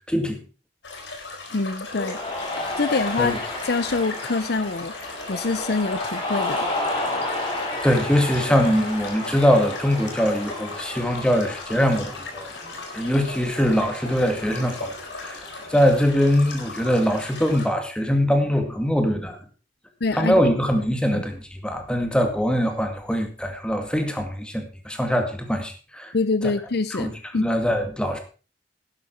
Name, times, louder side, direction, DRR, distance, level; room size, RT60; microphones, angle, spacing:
voice 1, 0.1-0.4 3.2-3.4 7.8-12.5 12.9-19.4 20.1-26.1 26.4-26.5 26.9-28.2, equal, 5° left, 5 dB, 2.1 m, -22 dB
sound 1, 0.8-17.7, left 3 dB, 80° left, 4.0 m, -38 dB
voice 2, 1.5-2.2 2.8-3.4 3.6-6.6 20.0-20.4 21.1-21.2 26.1-27.1 27.3-27.4, left 3 dB, 60° left, 13 dB, 0.7 m, -25 dB
Cheering, 1.9-16.7, left 2 dB, 30° left, 4.9 m, -32 dB
11.5 x 11.0 x 4.6 m, 0.36 s
head